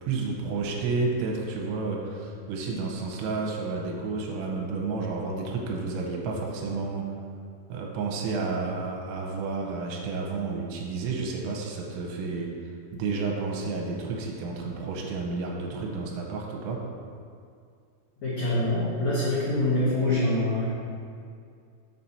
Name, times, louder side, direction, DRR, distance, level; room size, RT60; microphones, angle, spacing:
voice 1, 0.0-7.1 7.7-12.5 12.9-16.8, right 4 dB, 80° right, -1 dB, 3.0 m, -31 dB
voice 2, 18.2-20.7, left 1 dB, 75° left, -10 dB, 1.6 m, -25 dB
7.2 x 4.1 x 5.7 m, 2.3 s
omnidirectional pair, 5.5 m